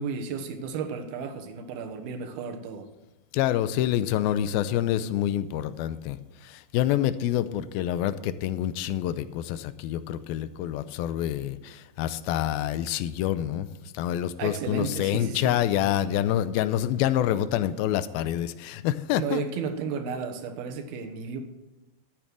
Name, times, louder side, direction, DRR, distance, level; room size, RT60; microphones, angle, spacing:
voice 1, 0.0-2.9 14.4-15.6 19.2-21.4, right 5 dB, 85° right, 5 dB, 3.1 m, -33 dB
voice 2, 3.3-13.7 13.9-19.4, left 11 dB, 85° left, 13 dB, 2.5 m, -27 dB
12.5 x 8.8 x 6.2 m, 1.0 s
omnidirectional pair, 4.3 m